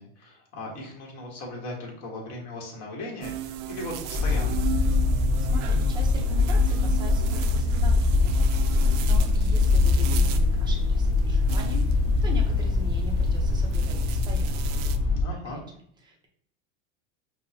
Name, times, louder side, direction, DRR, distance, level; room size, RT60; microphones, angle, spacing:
voice 1, 0.0-4.6 15.2-15.6, left 1 dB, 45° left, -1 dB, 1.3 m, -38 dB
sound 1, 3.2-15.0, right 10 dB, 75° right, 0.5 m, -37 dB
sound 2, 4.1-15.2, left 3 dB, 15° left, 1.0 m, -23 dB
voice 2, 5.4-14.7 15.4-15.6 16.0-16.3, equal, 10° right, 0 dB, 0.6 m, -41 dB
5.3 x 2.1 x 2.7 m, 0.66 s
supercardioid pair, 155°, 37 cm